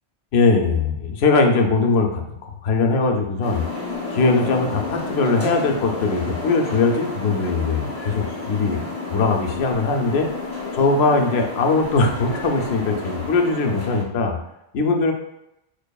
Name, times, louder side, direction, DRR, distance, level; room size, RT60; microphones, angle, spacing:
voice 1, 0.3-2.4 2.6-3.6 4.1-10.3 10.7-14.4 14.7-15.1, left 3 dB, 70° left, 4 dB, 0.8 m, -20 dB
sound 1, 3.4-14.0, left 3 dB, 15° left, 0.5 m, -31 dB
4.5 x 2.7 x 2.2 m, 0.86 s
omnidirectional pair, 1.2 m